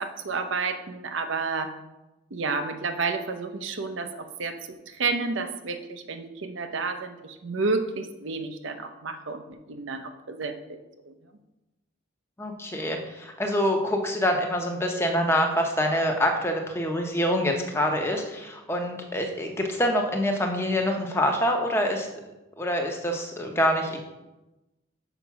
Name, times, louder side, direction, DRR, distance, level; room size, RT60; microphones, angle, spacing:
voice 1, 0.0-1.7 2.3-4.6 4.9-10.6 11.0-11.1, right 4 dB, 75° right, 8 dB, 0.7 m, -30 dB
voice 2, 12.4-22.1 22.6-24.0, equal, 10° left, 2 dB, 0.7 m, -25 dB
5.9 x 5.0 x 5.8 m, 1.0 s
head